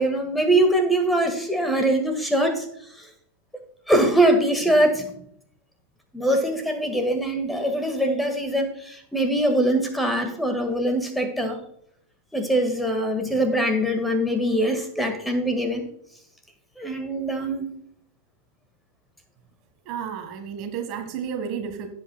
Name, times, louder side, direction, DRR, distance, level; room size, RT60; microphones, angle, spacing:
voice 1, 0.0-2.7 3.0-3.1 3.9-5.1 6.1-11.6 12.3-15.8 16.8-17.7, right 1 dB, 5° left, 6 dB, 1.7 m, -22 dB
voice 2, 19.8-21.9, right 7 dB, 40° right, 7 dB, 1.6 m, -32 dB
17.0 x 8.2 x 2.3 m, 0.70 s
figure-of-eight pair, 90°, 0 cm